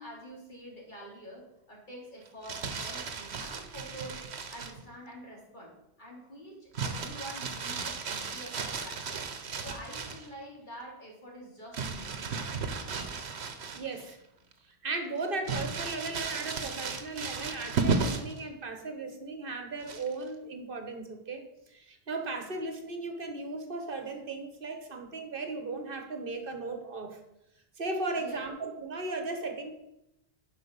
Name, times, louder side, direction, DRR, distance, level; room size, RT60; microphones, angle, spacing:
voice 1, 0.0-4.2 4.5-5.7 6.0-9.2 9.6-12.8 28.1-28.4, equal, 45° left, -3 dB, 3.2 m, -47 dB
Crumpling crinkling, 2.3-4.8 6.7-10.3 11.7-14.1 14.5-14.6 15.5-18.4 19.8-20.3, right 4 dB, 80° right, 1.2 m, -34 dB
voice 2, 13.7-14.2 14.8-21.4 21.7-27.2 27.8-29.7, right 3 dB, 55° right, 5 dB, 1.5 m, -36 dB
11.0 x 5.6 x 5.4 m, 0.87 s
omnidirectional pair, 1.1 m